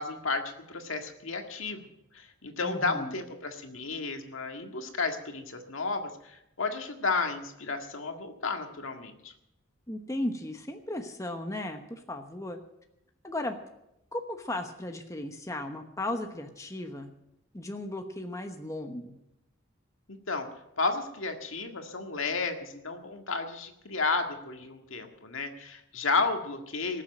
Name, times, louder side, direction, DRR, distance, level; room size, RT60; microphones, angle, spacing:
voice 1, 0.0-1.8 2.1-9.3 20.1-20.5 20.8-27.0, left 4 dB, 75° left, 5 dB, 1.8 m, -32 dB
voice 2, 2.6-3.2 9.9-12.6 13.2-13.5 14.1-17.1 17.5-19.1, left 1 dB, 15° left, 5 dB, 1.0 m, -36 dB
19.5 x 7.4 x 8.9 m, 0.84 s
head